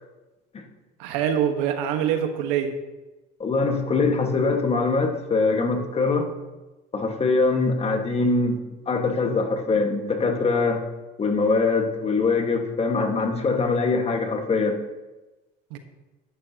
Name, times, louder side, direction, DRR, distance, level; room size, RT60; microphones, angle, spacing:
voice 1, 1.0-2.8 15.7-15.8, right 9 dB, 80° right, 6 dB, 1.4 m, -24 dB
voice 2, 3.4-6.3 6.9-10.8 11.2-14.8, left 3 dB, 30° left, 4 dB, 1.6 m, -23 dB
11.5 x 11.0 x 2.9 m, 1.1 s
supercardioid pair, 95°, 21 cm